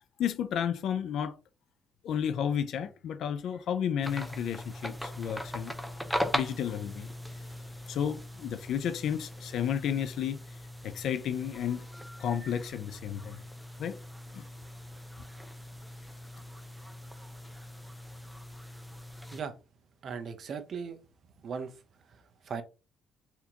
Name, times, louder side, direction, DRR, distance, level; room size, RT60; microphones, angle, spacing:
voice 1, 0.2-1.3 2.0-5.7 6.3-7.1 7.9-10.4 10.8-11.9 12.2-13.4 13.8-14.0 14.3-14.5, left 8 dB, 65° left, 0.4 m, -32 dB
sound 1, 4.0-19.4, equal, ahead, 0.4 m, -40 dB
voice 2, 20.0-21.0 21.4-21.8 22.4-22.6, right 6 dB, 45° right, 0.6 m, -37 dB
4.2 x 2.7 x 2.8 m
cardioid pair, 140°, 0 cm